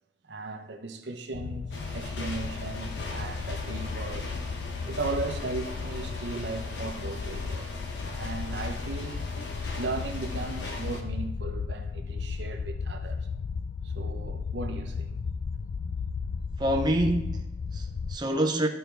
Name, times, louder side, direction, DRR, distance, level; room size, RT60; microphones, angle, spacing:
voice 1, 0.2-4.3 4.8-7.7 8.1-13.3 13.8-15.1, right 3 dB, 70° right, 0.8 m, -37 dB
sound 1, 1.3-18.2, left 5 dB, 55° left, 0.3 m, -35 dB
sound 2, 1.7-11.0, left 2 dB, 70° left, 1.1 m, -41 dB
voice 2, 16.6-18.7, right 1 dB, 25° right, 0.5 m, -27 dB
13.5 x 4.5 x 3.4 m
head